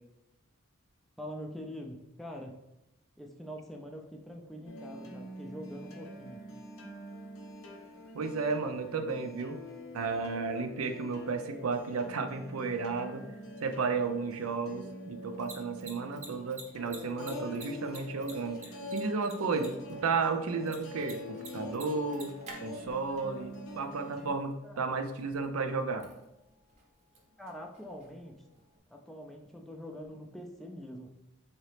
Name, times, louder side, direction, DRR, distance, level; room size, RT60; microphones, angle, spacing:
voice 1, 1.2-2.6 3.2-6.5 16.1-16.2 24.6-24.9 27.4-28.3 28.9-31.1, equal, ahead, 1 dB, 0.3 m, -44 dB
sound 1, 4.7-24.3, left 1 dB, 70° left, 0.7 m, -45 dB
voice 2, 8.1-9.6 9.9-13.2 13.6-18.6 18.9-22.3 22.6-26.1, right 4 dB, 85° right, 7 dB, 0.5 m, -33 dB
Mechanisms, 15.2-28.8, right 3 dB, 30° right, 0.7 m, -53 dB
4.0 x 2.8 x 3.3 m, 0.92 s
head